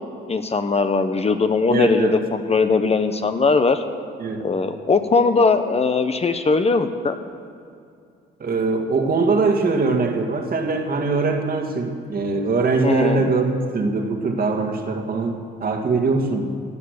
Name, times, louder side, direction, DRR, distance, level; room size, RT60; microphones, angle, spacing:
voice 1, 0.3-3.8 4.4-7.2 12.8-13.2, left 4 dB, 30° left, 8 dB, 0.9 m, -20 dB
voice 2, 1.7-2.2 4.2-4.5 8.4-16.5, right 3 dB, 50° right, 4 dB, 1.9 m, -22 dB
17.0 x 10.0 x 6.6 m, 2.4 s
cardioid pair, 90°, 20 cm